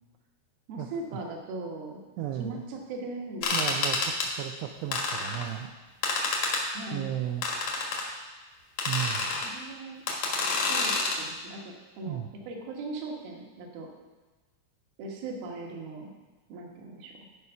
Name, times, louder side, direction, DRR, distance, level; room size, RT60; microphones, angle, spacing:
voice 1, 0.7-2.0 2.3-3.7 6.7-7.2 9.4-10.0 10.7-13.9 15.0-16.1 16.5-17.1, right 2 dB, 65° right, 0 dB, 2.7 m, -39 dB
voice 2, 2.2-2.6 3.5-5.7 6.9-7.5 8.9-9.4 12.1-12.3, right 11 dB, 80° right, 2 dB, 2.6 m, -34 dB
sound 1, 3.4-4.3 4.9-5.5 6.0-6.6 7.4-8.1 8.8-9.5 10.1-11.2, left 3 dB, 65° left, 1.7 m, -28 dB
12.5 x 4.8 x 5.6 m, 1.3 s
omnidirectional pair, 5.1 m